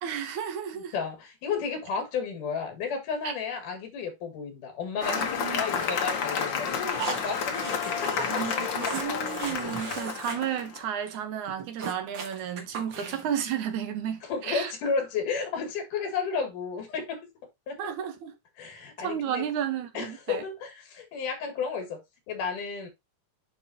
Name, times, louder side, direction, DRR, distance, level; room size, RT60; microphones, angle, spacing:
voice 1, 0.0-0.9 3.2-3.3 5.0-6.0 8.3-14.7 17.8-18.3 19.0-20.4, right 9 dB, 75° right, 2.5 m, -33 dB
voice 2, 0.7-8.4 13.0-13.2 14.2-17.3 17.7-17.9 18.6-19.4 19.9-22.9, left 5 dB, 90° left, 3.5 m, -33 dB
Cheering / Applause, 5.0-10.8, left 6 dB, 60° left, 1.3 m, -30 dB
sound 1, 7.0-10.4 10.6-10.8 11.1-11.2 11.5-13.4, right 5 dB, 50° right, 1.6 m, -38 dB
9.9 x 4.1 x 2.8 m
omnidirectional pair, 3.5 m